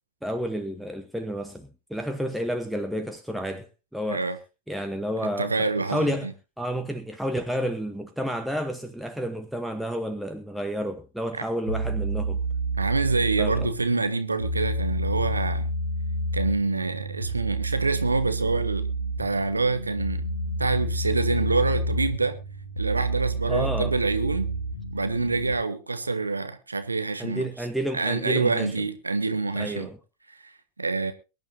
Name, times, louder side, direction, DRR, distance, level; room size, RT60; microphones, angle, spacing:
voice 1, 0.2-3.7 3.9-4.2 4.7-6.3 6.6-12.4 13.4-13.7 23.5-24.0 27.2-28.7 29.6-30.0, equal, ahead, 1.0 m, -30 dB
voice 2, 5.4-6.3 11.3-11.4 12.8-15.7 16.3-18.9 19.2-20.2 20.6-22.4 22.8-24.5 24.9-27.4 27.9-29.9 30.4-31.1, right 3 dB, 80° right, 1.1 m, -26 dB
sound 1, 11.7-25.5, right 1 dB, 85° left, 1.7 m, -29 dB
23.0 x 10.5 x 2.7 m
figure-of-eight pair, 90°, 0 cm